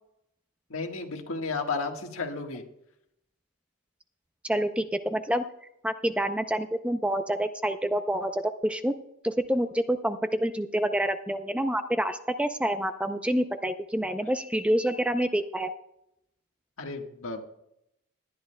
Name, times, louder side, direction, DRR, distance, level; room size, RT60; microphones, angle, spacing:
voice 1, 0.7-2.6 16.8-17.4, left 4 dB, 80° left, 3 dB, 1.5 m, -33 dB
voice 2, 4.4-5.4 5.8-8.9 9.2-15.7, right 1 dB, 5° right, 9 dB, 0.4 m, -27 dB
21.0 x 10.5 x 2.2 m, 0.79 s
head